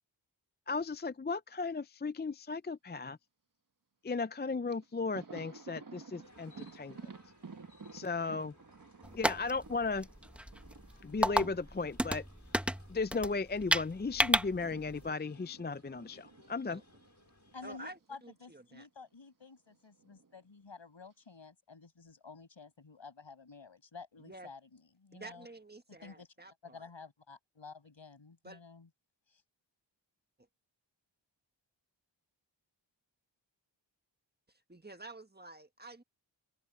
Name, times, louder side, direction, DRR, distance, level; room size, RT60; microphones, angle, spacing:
voice 1, 0.7-3.2 4.0-7.1 7.9-8.5 9.1-10.1 11.0-12.2 12.9-16.8, left 4 dB, 25° left, 0.5 m, -36 dB
Thunder, 4.7-13.5 13.8-18.1 18.4-18.5 19.7-20.4, right 4 dB, 45° right, 1.4 m, -53 dB
sound 1, 6.2-17.8, left 3 dB, 40° left, 5.2 m, -64 dB
sound 2, 9.0-15.1, equal, 5° right, 1.0 m, -33 dB
voice 2, 9.0-9.4 16.7-16.8 17.6-18.9 24.2-24.5 25.1-26.9 28.4-28.6 34.5-36.0, right 2 dB, 20° right, 1.6 m, -50 dB
voice 3, 17.5-25.5 25.9-26.3 26.6-28.9 29.3-29.4, left 4 dB, 70° left, 6.2 m, -52 dB
wide cardioid pair, 60°, 45 cm